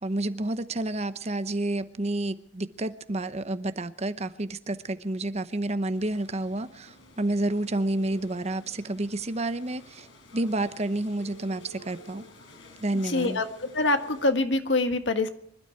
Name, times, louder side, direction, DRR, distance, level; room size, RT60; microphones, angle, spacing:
voice 1, 0.0-10.1 10.3-12.2 12.8-13.4, right 2 dB, 35° right, 0.9 m, -30 dB
sound 1, 5.9-14.3, left 3 dB, 90° left, 4.6 m, -53 dB
Telephone, 7.7-8.2 11.2-12.2 13.4-14.3, right 6 dB, 10° right, 4.2 m, -50 dB
voice 2, 13.0-15.3, left 2 dB, 75° left, 1.7 m, -25 dB
25.5 x 12.5 x 4.6 m
head